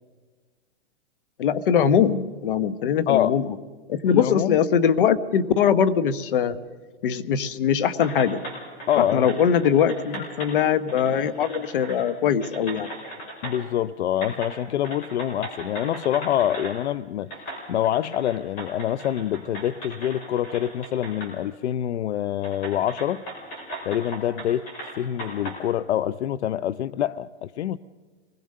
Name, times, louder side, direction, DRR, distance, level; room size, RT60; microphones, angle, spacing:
voice 1, 1.4-3.4 3.9-6.6 7.0-8.4 9.0-12.9, left 8 dB, 50° left, 16 dB, 1.1 m, -21 dB
voice 2, 3.1-3.4 4.1-4.6 8.9-9.3 13.4-17.3 17.7-23.2 23.8-24.6 25.0-27.8, left 11 dB, 80° left, 18 dB, 0.6 m, -25 dB
sound 1, 8.0-10.5 10.9-12.1 12.4-13.8 14.2-14.6 14.8-16.8 17.3-21.3 21.7-21.8 22.4-25.6, right 1 dB, 25° left, 5.3 m, -38 dB
26.0 x 20.5 x 6.5 m, 1.5 s
hypercardioid pair, 170°, 33 cm